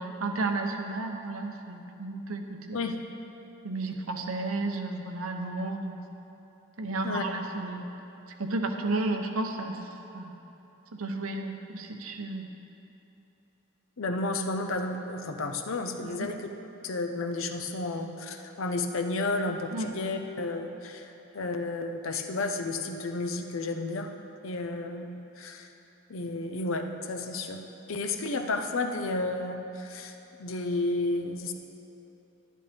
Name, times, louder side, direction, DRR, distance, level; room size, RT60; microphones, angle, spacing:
voice 1, 0.0-2.6 3.6-6.0 6.8-7.8 8.4-10.4 10.9-12.5 16.0-16.3 19.7-19.9, right 2 dB, 85° right, 4 dB, 0.8 m, -32 dB
voice 2, 14.0-16.5 16.8-24.1 24.4-25.7 26.1-27.6 27.9-31.5, left 2 dB, 75° left, 5 dB, 0.7 m, -32 dB
11.0 x 10.5 x 3.5 m, 3.0 s
head